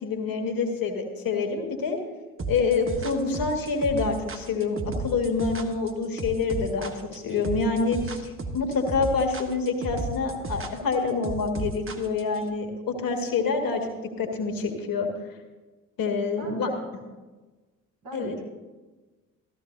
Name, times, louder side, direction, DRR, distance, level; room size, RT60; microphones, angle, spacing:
voice 1, 0.0-2.0 2.5-13.9 14.2-15.1 16.0-16.7 18.1-18.3, left 4 dB, 55° left, 4 dB, 2.0 m, -27 dB
sound 1, 2.4-12.4, right 3 dB, 30° right, 1.3 m, -34 dB
voice 2, 16.4-16.8 18.0-18.4, equal, 60° right, -2 dB, 3.7 m, -37 dB
14.0 x 14.0 x 2.7 m, 1.3 s
hypercardioid pair, 50°, 41 cm